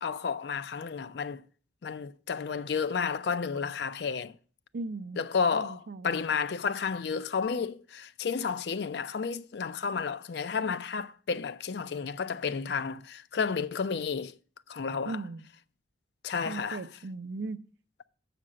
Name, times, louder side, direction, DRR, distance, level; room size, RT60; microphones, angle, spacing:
voice 1, 0.0-1.4 1.8-4.3 5.2-14.3 14.7-15.2 16.2-16.9, left 5 dB, 60° left, 0.4 m, -31 dB
voice 2, 4.7-5.3 5.5-6.1 15.0-15.4 16.4-17.6, right 3 dB, 65° right, 0.5 m, -37 dB
7.6 x 5.1 x 7.4 m
head